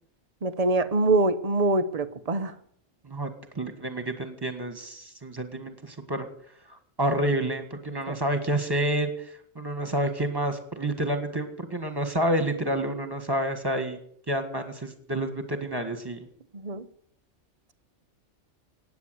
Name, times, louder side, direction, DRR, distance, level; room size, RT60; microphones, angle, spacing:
voice 1, 0.4-2.5 8.1-8.2 16.5-16.8, right 2 dB, 35° right, 11 dB, 0.9 m, -24 dB
voice 2, 3.0-6.3 6.7-14.0 14.3-16.2, right 1 dB, 20° right, 8 dB, 1.9 m, -29 dB
17.0 x 9.5 x 8.1 m, 0.66 s
omnidirectional pair, 1.3 m